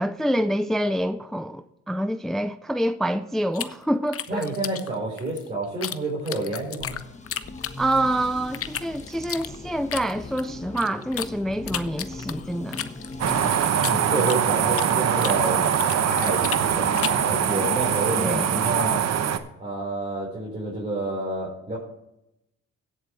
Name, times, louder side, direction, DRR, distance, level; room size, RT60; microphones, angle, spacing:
voice 1, 0.0-4.5 7.8-12.9 17.7-18.6, right 1 dB, ahead, 0.4 m, -27 dB
sound 1, 3.5-6.0 6.3-8.1 8.5-11.3 11.7-14.9 15.2-17.3, left 9 dB, 50° left, 0.7 m, -34 dB
voice 2, 4.3-7.0 13.8-15.6 15.9-19.0 19.6-21.8, right 2 dB, 25° right, 4.8 m, -29 dB
sound 2, 6.8-13.5, left 2 dB, 25° left, 1.4 m, -39 dB
sound 3, 13.2-19.4, right 8 dB, 60° right, 1.0 m, -23 dB
16.5 x 7.7 x 3.3 m
cardioid pair, 90°, 30 cm